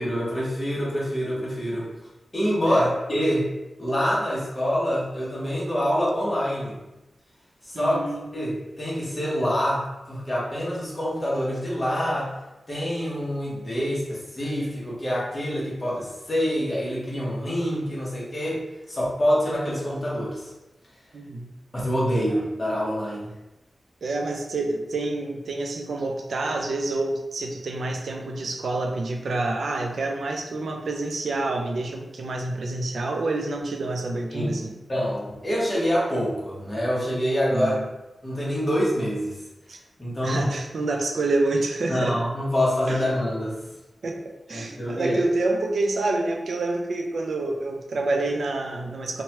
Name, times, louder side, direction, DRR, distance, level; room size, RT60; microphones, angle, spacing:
voice 1, 0.0-1.9 2.3-3.5 3.8-6.8 7.6-8.1 8.3-12.3 12.7-18.6 18.9-20.5 21.7-23.3 34.3-34.6 34.9-37.7 38.2-39.4 40.0-40.4 41.9-43.6 44.5-45.2, equal, 25° left, -6 dB, 0.9 m, -26 dB
voice 2, 7.7-8.3 21.1-21.5 22.3-22.4 24.0-34.7 37.5-37.9 39.7-39.8 40.2-42.2 42.9-43.0 44.0-44.2 44.5-49.2, right 2 dB, 75° right, 2 dB, 0.4 m, -28 dB
3.0 x 2.2 x 2.8 m, 1.0 s
wide cardioid pair, 155°, 0 cm